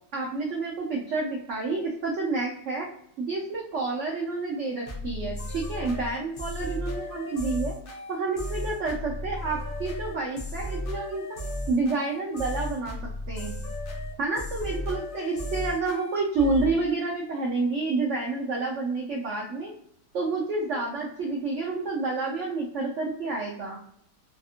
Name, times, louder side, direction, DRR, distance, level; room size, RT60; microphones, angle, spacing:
voice 1, 0.1-2.9 3.2-7.7 8.1-11.2 11.7-13.0 13.3-13.5 14.2-19.7 20.1-23.8, right 3 dB, 65° right, -3 dB, 0.7 m, -29 dB
sound 1, 4.9-16.7, left 1 dB, 70° left, 0.5 m, -34 dB
3.5 x 2.4 x 2.4 m, 0.68 s
omnidirectional pair, 1.8 m